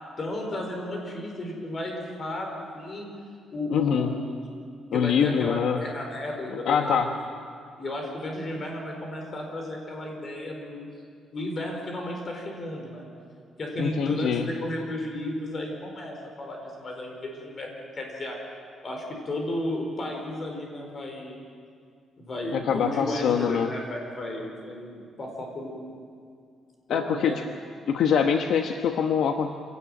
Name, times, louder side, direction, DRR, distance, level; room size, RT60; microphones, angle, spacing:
voice 1, 0.2-3.1 3.5-4.2 4.9-7.1 7.8-10.8 11.3-13.1 13.6-18.4 18.8-21.4 22.2-26.0 26.9-27.4, left 1 dB, 30° left, 1 dB, 4.9 m, -33 dB
voice 2, 3.7-4.2 4.9-5.8 6.5-7.1 13.8-14.5 22.5-23.7 26.9-27.4 27.9-29.5, left 7 dB, 65° left, 5 dB, 1.1 m, -24 dB
26.5 x 17.5 x 9.1 m, 2.3 s
cardioid pair, 170°, 0 cm